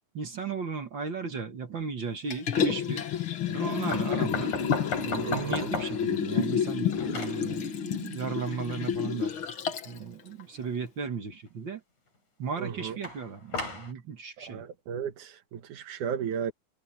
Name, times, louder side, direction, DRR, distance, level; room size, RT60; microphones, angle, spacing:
voice 1, 0.1-3.1 3.5-4.6 5.0-9.3 9.8-11.8 12.4-14.6, right 5 dB, 45° right, 1.9 m, -35 dB
Liquid, 2.3-10.0 10.4-10.5, left 7 dB, 50° left, 2.0 m, -30 dB
sound 1, 3.9-6.1 6.5-7.4 13.0-13.9, left 4 dB, 85° left, 8.5 m, -34 dB
voice 2, 5.2-5.6 12.6-12.9 14.5-16.5, right 8 dB, 90° right, 3.0 m, -34 dB
omnidirectional pair, 3.4 m